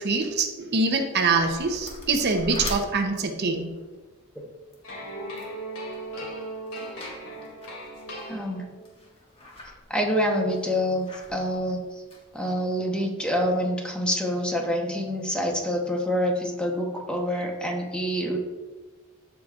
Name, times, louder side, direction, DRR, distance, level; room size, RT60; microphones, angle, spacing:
voice 1, 0.0-3.7, right 3 dB, 55° right, 4 dB, 0.7 m, -24 dB
sound 1, 0.8-12.5, left 1 dB, 25° left, 1.6 m, -44 dB
sound 2, 4.8-8.9, right 1 dB, 90° left, 2.5 m, -37 dB
voice 2, 8.3-8.6 9.9-11.8 12.3-18.4, equal, 5° left, 0 dB, 0.9 m, -26 dB
14.5 x 5.0 x 2.4 m, 1.3 s
head